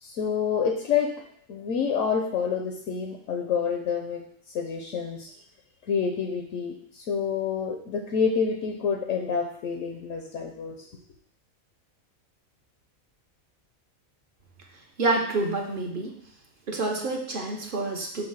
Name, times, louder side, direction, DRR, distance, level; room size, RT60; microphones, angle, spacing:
voice 1, 0.0-1.1 1.5-4.2 4.5-5.3 5.9-10.7, left 6 dB, 70° left, 2 dB, 1.1 m, -28 dB
voice 2, 15.0-16.1 16.7-18.2, right 2 dB, 45° right, 0 dB, 1.0 m, -27 dB
6.5 x 2.8 x 5.5 m, 0.63 s
omnidirectional pair, 1.4 m